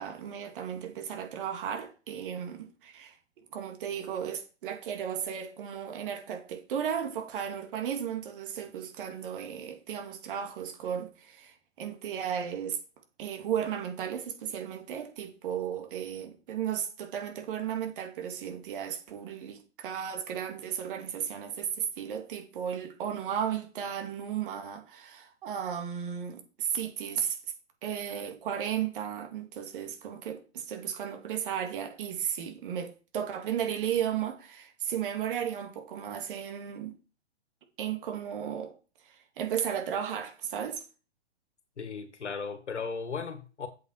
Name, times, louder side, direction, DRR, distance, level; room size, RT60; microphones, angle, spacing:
voice 1, 0.0-3.2 3.5-12.8 13.2-27.4 27.8-36.9 37.8-38.7 39.1-40.8, right 8 dB, 50° right, 2.2 m, -34 dB
voice 2, 41.8-43.7, left 5 dB, 80° left, 1.8 m, -36 dB
7.9 x 7.2 x 4.6 m
hypercardioid pair, 125°, 34 cm